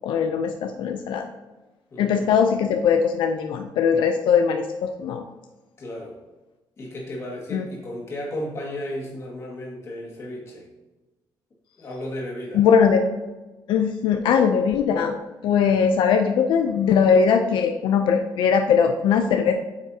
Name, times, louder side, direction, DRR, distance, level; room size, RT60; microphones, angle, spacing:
voice 1, 0.0-1.3 2.0-5.2 7.5-7.6 12.5-13.0 13.7-15.1 15.4-19.5, left 6 dB, 80° left, 5 dB, 0.5 m, -20 dB
voice 2, 1.9-2.3 5.8-6.2 6.8-10.7 11.8-12.6, left 1 dB, 35° left, -2 dB, 2.0 m, -34 dB
8.7 x 5.8 x 2.8 m, 1.1 s
cardioid pair, 160°, 8 cm